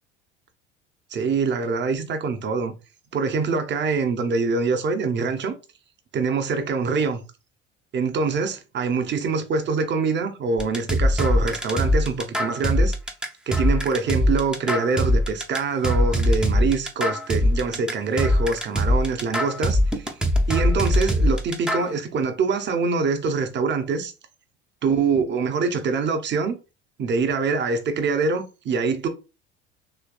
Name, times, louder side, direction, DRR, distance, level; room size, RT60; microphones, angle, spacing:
voice 1, 1.1-2.7 3.1-5.5 6.1-7.2 7.9-12.9 13.5-20.1 20.5-24.1 24.8-26.6 27.0-29.1, right 4 dB, 35° right, 0.7 m, -24 dB
sound 1, 10.6-21.9, left 1 dB, 5° right, 0.5 m, -21 dB
3.3 x 3.1 x 2.3 m
hypercardioid pair, 65°, 32 cm